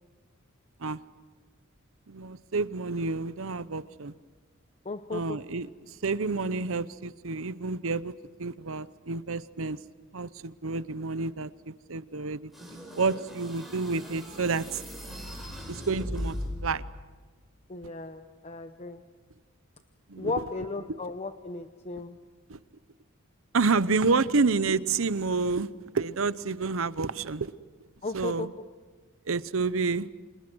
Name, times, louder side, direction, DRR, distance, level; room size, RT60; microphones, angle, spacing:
voice 1, 2.1-4.1 5.1-8.1 8.4-9.8 10.1-12.5 13.0-14.8 15.7-16.4 16.6-16.8 20.1-20.3 22.5-22.6 23.5-25.7 25.9-27.5 28.1-28.5 29.3-30.1, right 4 dB, 70° right, 16 dB, 0.8 m, -29 dB
voice 2, 4.8-5.4 17.7-19.0 20.2-22.2 28.0-28.5, left 3 dB, 30° left, 8 dB, 0.8 m, -35 dB
sound 1, 12.5-16.9, equal, ahead, 5.5 m, -38 dB
30.0 x 26.5 x 6.3 m, 1.4 s
head